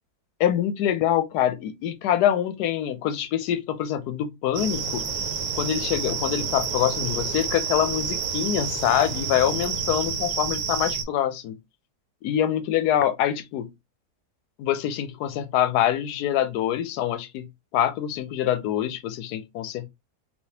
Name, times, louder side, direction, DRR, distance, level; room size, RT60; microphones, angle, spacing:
voice 1, 0.4-5.0 5.5-11.6 12.2-13.7 14.6-17.5 17.7-19.9, left 11 dB, 85° left, 1.1 m, -25 dB
sound 1, 4.5-11.0, right 6 dB, 65° right, 1.0 m, -29 dB
3.3 x 2.7 x 2.7 m
omnidirectional pair, 1.7 m